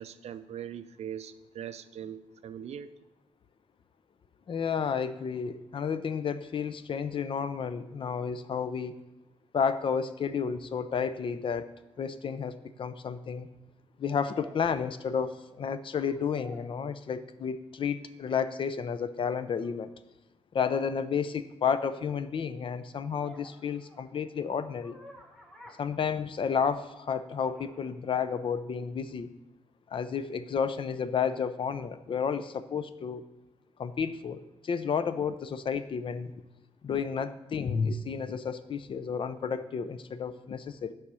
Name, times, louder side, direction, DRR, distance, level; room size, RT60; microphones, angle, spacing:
voice 1, 0.0-2.9, right 9 dB, 70° right, 12 dB, 0.5 m, -41 dB
voice 2, 4.5-8.9 9.5-13.5 14.0-19.9 20.5-25.0 25.8-29.3 29.9-33.2 33.8-36.3 36.8-40.9, left 6 dB, 50° left, 13 dB, 0.5 m, -31 dB
sound 1, 11.7-11.8 14.1-15.4 15.8-16.9 19.5-19.8 23.2-26.7 27.4-28.0, equal, 5° left, 1.3 m, -52 dB
7.0 x 4.9 x 6.2 m, 1.0 s
cardioid pair, 100°, 11 cm